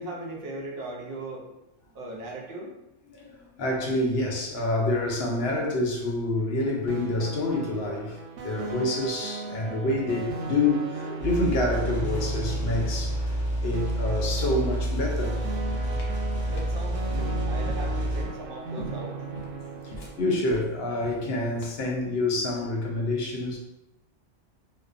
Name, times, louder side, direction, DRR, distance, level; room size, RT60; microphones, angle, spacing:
voice 1, 0.0-1.5 1.9-2.7 16.5-19.2, right 2 dB, 60° right, 0.7 m, -38 dB
voice 2, 3.1-13.4 13.6-15.4 19.8-23.6, left 2 dB, 65° left, 0.8 m, -27 dB
sound 1, 6.9-20.4, right 3 dB, 90° right, 0.9 m, -37 dB
sound 2, 11.2-18.2, right 1 dB, 15° left, 0.5 m, -29 dB
sound 3, 15.9-22.0, left 1 dB, 90° left, 1.0 m, -42 dB
2.5 x 2.2 x 2.4 m
omnidirectional pair, 1.3 m